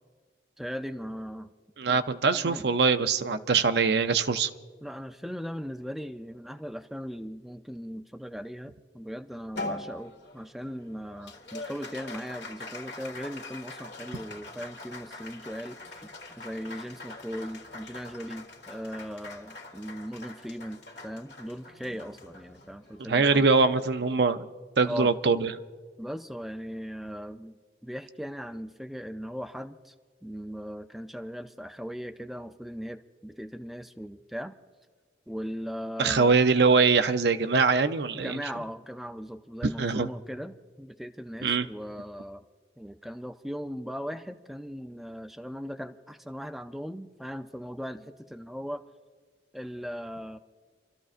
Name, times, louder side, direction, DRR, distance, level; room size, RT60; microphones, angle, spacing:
voice 1, 0.6-1.5 2.3-2.7 4.8-16.1 16.4-23.5 24.9-25.1 26.0-27.6 27.8-29.9 30.2-34.6 35.3-36.3 38.1-42.5 42.8-48.8 49.5-50.4, equal, ahead, 6 dB, 0.4 m, -38 dB
voice 2, 1.8-4.5 23.1-24.4 24.8-25.5 36.0-38.4 39.8-40.1 41.4-41.7, right 4 dB, 65° right, 9 dB, 0.6 m, -23 dB
Applause, 9.6-24.2, left 2 dB, 75° left, 1.7 m, -43 dB
29.5 x 13.5 x 2.5 m, 1.5 s
head